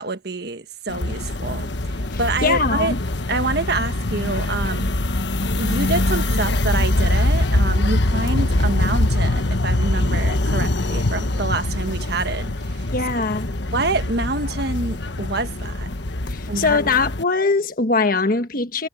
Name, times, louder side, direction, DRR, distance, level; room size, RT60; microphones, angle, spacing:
voice 1, 0.0-1.7 2.2-2.9 3.3-4.9 5.5-12.8 13.7-15.9 16.5-16.8, right 3 dB, 60° right, 1.5 m, -26 dB
sound 1, 0.9-17.2, left 1 dB, 70° left, 1.4 m, -23 dB
voice 2, 2.1-3.0 12.9-13.5 16.3-18.9, left 4 dB, 50° left, 1.4 m, -21 dB
head